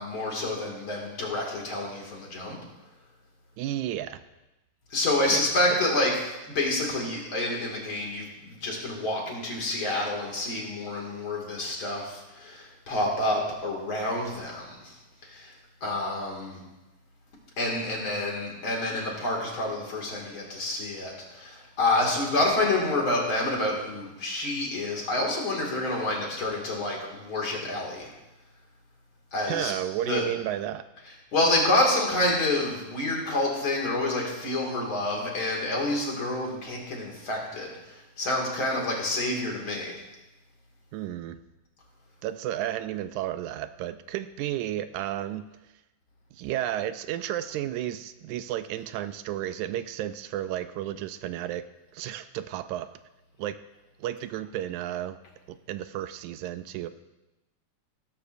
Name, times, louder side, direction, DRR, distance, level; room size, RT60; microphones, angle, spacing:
voice 1, 0.0-2.6 4.9-14.9 15.3-15.5 15.8-16.6 17.6-28.1 29.3-29.7 30.1-30.2 31.3-37.7 38.2-39.9, left 2 dB, 45° left, -1 dB, 2.9 m, -28 dB
voice 2, 3.6-4.2 5.3-5.4 5.7-6.1 29.5-30.8 40.9-41.4 42.2-45.4 46.3-51.7 51.9-52.9 53.4-53.6 54.0-55.2 55.5-56.9, right 12 dB, 85° right, 11 dB, 1.9 m, -32 dB
16.5 x 13.5 x 2.6 m, 1.0 s
omnidirectional pair, 3.4 m